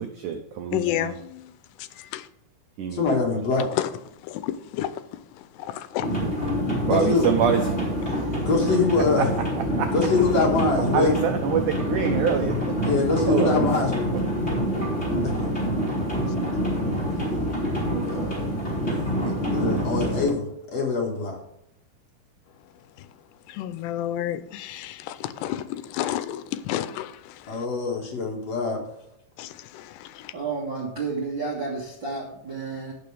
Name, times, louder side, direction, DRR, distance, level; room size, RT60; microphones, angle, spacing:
voice 1, 0.0-1.1 2.8-3.4 6.9-7.7 8.0-8.5 9.8-9.9 10.9-12.5 13.3-13.5, right 7 dB, 80° right, 1.8 m, -26 dB
voice 2, 0.7-1.4 1.8-2.3 3.8-3.9 4.2-5.0 5.6-6.1 23.5-27.6 29.4-30.3, left 12 dB, 80° left, 2.7 m, -31 dB
voice 3, 2.9-3.7 6.8-7.3 8.5-9.3 9.9-11.2 12.8-14.1 15.2-15.5 18.0-18.4 18.8-20.4 20.7-21.4 27.5-28.8, left 4 dB, 50° left, 2.4 m, -24 dB
sound 1, 6.0-20.3, equal, 15° left, 3.3 m, -26 dB
voice 4, 30.3-32.9, right 4 dB, 50° right, 1.5 m, -31 dB
17.0 x 6.1 x 3.4 m
omnidirectional pair, 4.9 m